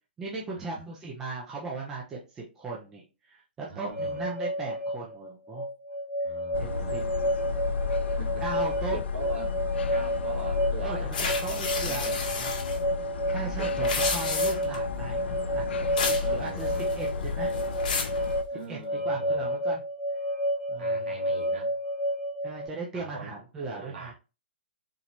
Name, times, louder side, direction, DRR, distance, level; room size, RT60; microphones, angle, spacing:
voice 1, 0.2-5.6 6.6-7.0 8.4-9.0 10.8-12.5 13.3-17.6 18.7-19.8 20.7-21.1 22.4-24.1, right 3 dB, 5° right, 0.4 m, -38 dB
voice 2, 3.7-4.2 6.2-7.1 8.2-8.5 8.9-9.5 9.9-12.2 13.3-14.1 16.2-17.6 18.5-19.5 20.8-21.8 22.9-24.1, right 3 dB, 70° right, 2.2 m, -43 dB
sound 1, 3.9-22.7, equal, 25° right, 1.5 m, -30 dB
sound 2, 6.5-18.4, left 5 dB, 75° left, 0.4 m, -33 dB
sound 3, 11.1-12.8 13.7-14.8 16.0-16.3 16.6-17.1 17.5-18.2, left 5 dB, 45° left, 1.3 m, -31 dB
4.3 x 3.0 x 2.6 m
hypercardioid pair, 180°, 6 cm